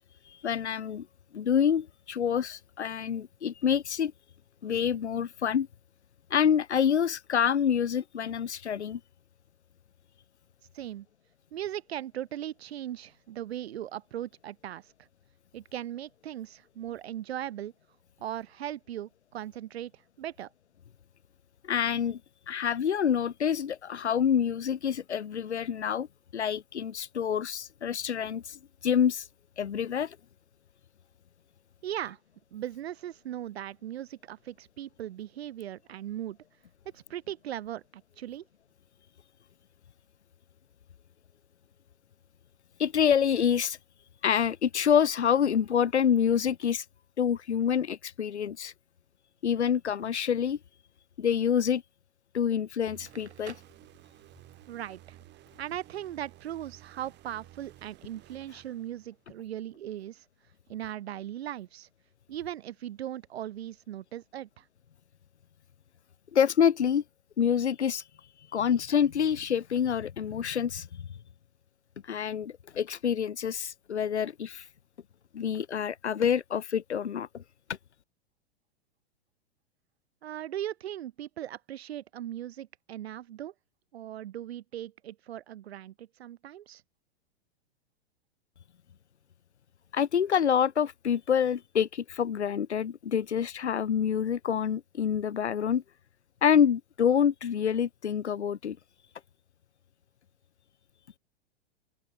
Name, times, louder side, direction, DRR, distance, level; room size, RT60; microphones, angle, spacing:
voice 1, 0.3-1.1 1.3-4.1 4.6-5.7 6.3-9.0 21.7-22.2 22.5-26.1 26.3-29.3 29.6-30.2 42.8-43.8 44.2-46.9 47.2-48.7 49.4-50.6 51.2-51.8 52.3-53.5 66.3-67.0 67.4-68.0 68.5-71.0 72.0-74.7 75.3-77.4 89.9-95.8 96.4-98.8, left 8 dB, 85° left, 0.8 m, -27 dB
voice 2, 10.7-11.1 11.5-14.9 15.5-17.7 18.2-20.5 31.8-32.2 32.5-36.4 36.9-38.4 54.7-55.2 55.6-60.2 60.7-61.9 62.3-64.6 80.2-83.5 83.9-86.8, right 12 dB, 70° right, 0.8 m, -38 dB
sound 1, 52.9-59.3, right 15 dB, 35° right, 4.6 m, -54 dB
Crackle, 52.9-54.5, right 5 dB, 85° right, 3.7 m, -51 dB
open air
figure-of-eight pair, 105°, 33 cm